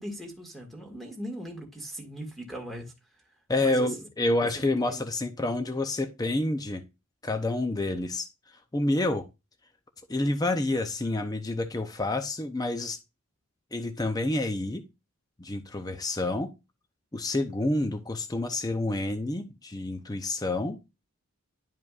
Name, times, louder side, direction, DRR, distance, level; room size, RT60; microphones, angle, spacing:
voice 1, 0.0-2.9 3.6-3.9 4.4-5.0, equal, ahead, 1.8 m, -39 dB
voice 2, 3.5-6.8 7.2-8.3 8.7-9.2 10.1-13.0 13.7-14.8 15.4-16.5 17.1-20.8, left 2 dB, 15° left, 0.5 m, -28 dB
11.0 x 5.0 x 2.4 m
head